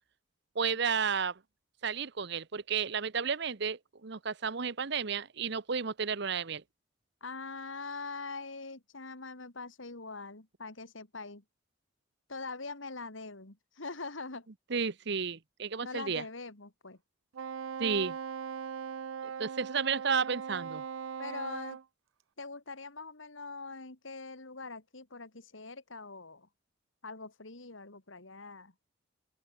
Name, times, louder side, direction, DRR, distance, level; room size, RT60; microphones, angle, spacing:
voice 1, 0.5-1.4 1.8-6.6 14.7-16.2 17.8-18.2 19.2-20.8, right 6 dB, 60° right, 0.9 m, -32 dB
voice 2, 7.2-11.4 12.3-14.5 15.8-17.0 21.2-21.8 22.4-26.5 27.0-28.7, left 3 dB, 75° left, 2.6 m, -43 dB
Wind instrument woodwind instrument, 17.3-21.8, right 7 dB, 90° right, 0.5 m, -40 dB
open air
head